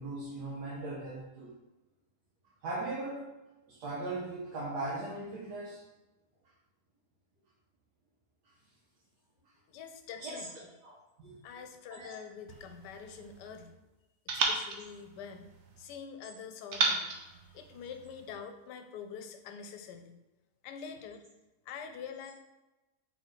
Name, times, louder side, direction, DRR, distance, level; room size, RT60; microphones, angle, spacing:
voice 1, 0.0-1.5 2.6-3.3 3.7-5.8 10.2-10.4 10.8-10.9 11.2-11.4 11.9-12.1, right 2 dB, 75° right, -6 dB, 1.4 m, -38 dB
voice 2, 9.7-10.7 11.4-13.7 14.3-15.5 15.8-20.2 20.6-21.2 21.7-22.3, left 6 dB, 90° left, 7 dB, 1.2 m, -45 dB
sound 1, 12.5-13.7 14.3-15.9 16.7-18.3, right 3 dB, 60° right, 0.7 m, -35 dB
4.2 x 4.0 x 3.1 m, 1.0 s
omnidirectional pair, 1.8 m